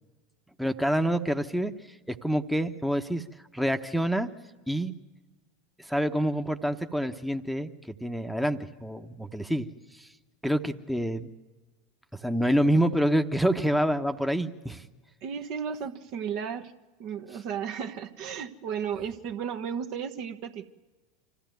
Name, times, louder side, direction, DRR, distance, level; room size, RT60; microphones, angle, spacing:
voice 1, 0.6-1.7 2.1-3.2 3.5-4.3 4.7-4.9 5.8-9.7 9.9-10.1 10.4-11.3 12.1-14.8, equal, ahead, 6 dB, 1.0 m, -27 dB
voice 2, 15.2-16.7 17.0-20.7, right 7 dB, 55° right, 7 dB, 1.2 m, -34 dB
25.5 x 15.0 x 9.3 m, 1.3 s
hypercardioid pair, 85°, 0 cm